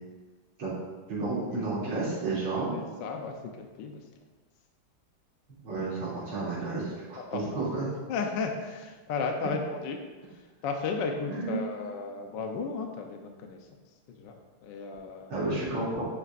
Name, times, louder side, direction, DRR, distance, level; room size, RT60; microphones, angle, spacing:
voice 1, 1.1-2.8 5.6-7.9 11.3-11.6 15.3-16.1, right 3 dB, 80° right, -10 dB, 3.7 m, -31 dB
voice 2, 2.7-4.0 7.2-7.7 8.1-10.0 10.3-13.7 14.1-15.3, left 4 dB, 65° left, 3 dB, 1.3 m, -34 dB
10.5 x 8.5 x 2.5 m, 1.3 s
omnidirectional pair, 2.3 m